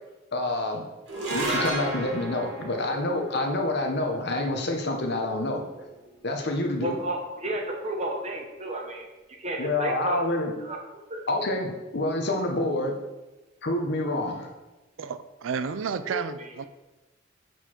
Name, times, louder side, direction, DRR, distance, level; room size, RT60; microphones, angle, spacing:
voice 1, 0.3-0.9 1.3-5.6 6.2-7.0 9.6-10.5 11.3-13.0 13.6-14.5, left 2 dB, 60° left, 3 dB, 1.0 m, -27 dB
sound 1, 1.1-7.5, right 1 dB, 75° right, 2.0 m, -35 dB
voice 2, 6.8-9.1 9.4-10.8 11.1-11.2 15.9-16.2, right 1 dB, 35° right, 1 dB, 1.1 m, -32 dB
voice 3, 15.0-16.6, right 6 dB, 90° right, 12 dB, 0.4 m, -31 dB
6.7 x 4.6 x 4.4 m, 1.1 s
head